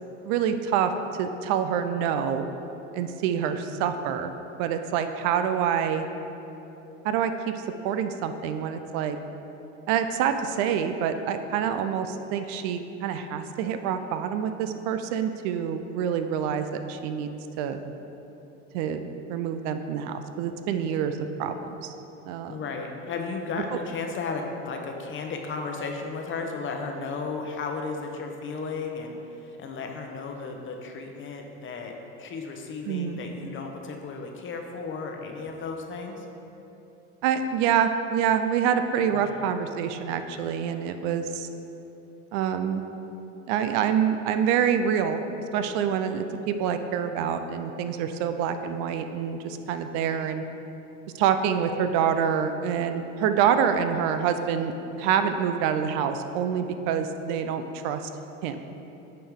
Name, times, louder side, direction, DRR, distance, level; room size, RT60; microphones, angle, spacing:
voice 1, 0.2-0.9 1.2-2.5 2.9-4.3 4.6-6.1 7.0-9.2 9.9-17.3 17.6-17.8 18.7-19.0 19.3-21.9 22.3-22.6 23.7-23.8 32.9-33.2 37.2-41.5 42.3-42.8 43.5-45.2 45.5-50.4 51.1-54.7 55.0-58.0 58.4-58.6, right 8 dB, 65° right, 8 dB, 0.5 m, -26 dB
voice 2, 22.5-31.9 32.2-36.3 39.1-39.4, left 4 dB, 35° left, 3 dB, 0.9 m, -34 dB
9.1 x 4.4 x 3.6 m, 3.0 s
supercardioid pair, 95°, 34 cm